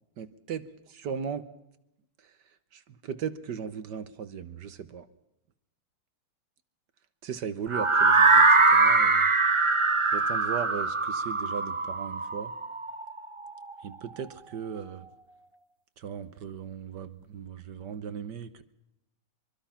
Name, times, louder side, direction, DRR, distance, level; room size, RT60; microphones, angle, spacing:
voice 1, 0.2-1.5 2.2-2.3 2.7-5.1 7.2-9.3 10.1-12.5 13.8-15.1 16.0-18.6, right 7 dB, 60° right, 13 dB, 1.5 m, -37 dB
sound 1, 7.7-13.6, right 3 dB, 35° right, 0.5 m, -22 dB
24.0 x 23.5 x 5.7 m, 0.83 s
omnidirectional pair, 2.4 m